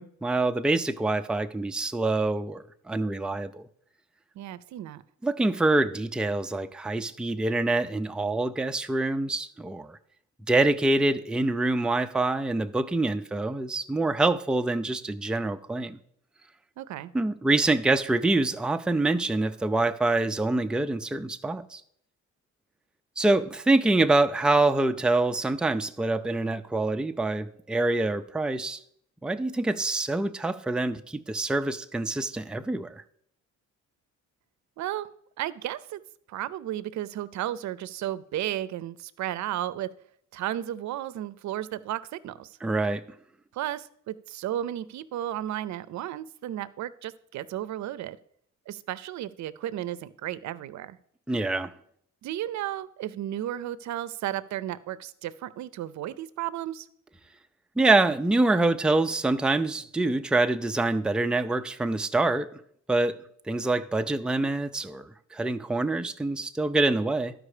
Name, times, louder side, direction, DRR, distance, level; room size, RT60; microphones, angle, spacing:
voice 1, 0.0-3.7 5.2-10.0 10.5-16.0 17.1-21.8 23.2-28.8 29.2-33.0 42.6-43.0 51.3-51.7 57.8-62.5 62.9-63.2 63.5-67.3, right 2 dB, 5° right, 0.4 m, -25 dB
voice 2, 4.4-5.0 16.8-17.1 34.8-36.0 36.3-39.9 40.3-42.6 43.5-48.2 48.7-51.0 52.2-56.9, right 12 dB, 70° right, 0.6 m, -34 dB
12.0 x 5.0 x 4.9 m
cardioid pair, 90°, 30 cm